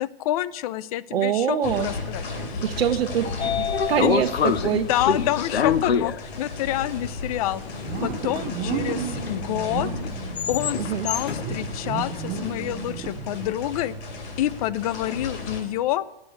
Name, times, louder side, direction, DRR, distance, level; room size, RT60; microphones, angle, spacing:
voice 1, 0.0-2.6 4.7-7.6 8.0-9.9 10.5-13.9 14.4-16.1, left 13 dB, 40° left, 18 dB, 0.5 m, -28 dB
voice 2, 1.1-1.9 2.6-4.9 10.8-11.1, right 9 dB, 75° right, 3 dB, 0.8 m, -25 dB
sound 1, 1.6-15.6, left 3 dB, 60° left, 3.4 m, -35 dB
sound 2, 2.2-15.3, right 7 dB, 30° right, 1.0 m, -36 dB
Train / Sliding door, 2.8-13.0, left 7 dB, 90° left, 0.7 m, -28 dB
10.5 x 8.3 x 7.8 m, 0.93 s
hypercardioid pair, 130°, 30 cm